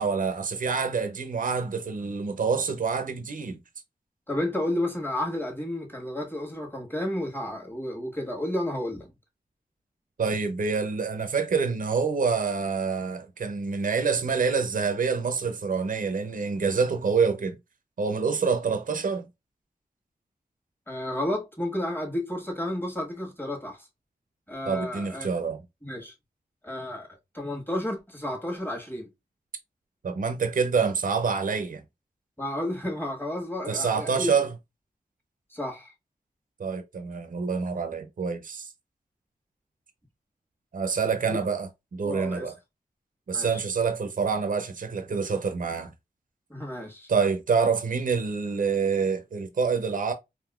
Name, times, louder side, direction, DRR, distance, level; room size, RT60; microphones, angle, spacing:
voice 1, 0.0-3.6 10.2-17.6 18.0-19.3 24.7-25.6 30.0-31.8 33.7-34.5 36.6-38.7 40.7-42.5 43.3-45.9 47.1-50.1, right 5 dB, 55° right, 0.6 m, -27 dB
voice 2, 4.3-9.1 20.9-23.9 24.5-25.3 25.8-26.1 26.6-27.1 27.3-29.1 32.4-34.3 35.5-35.9 41.3-41.4 42.0-42.5 43.3-43.6 46.5-47.1, left 1 dB, 15° left, 1.4 m, -31 dB
3.6 x 2.5 x 2.3 m
cardioid pair, 50°, 16 cm